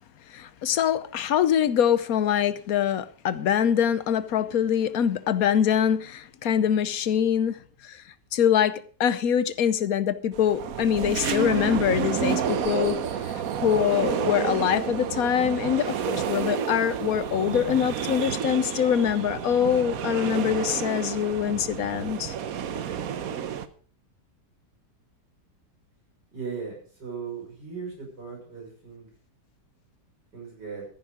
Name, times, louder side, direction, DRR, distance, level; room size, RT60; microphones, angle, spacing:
voice 1, 0.3-8.0 8.3-13.3 13.6-22.3, left 9 dB, 60° left, 1.2 m, -24 dB
sound 1, 10.3-23.7, right 8 dB, 60° right, 1.2 m, -30 dB
voice 2, 26.3-29.1 30.3-30.9, right 5 dB, 80° right, 6.9 m, -37 dB
14.0 x 10.5 x 5.0 m
omnidirectional pair, 1.8 m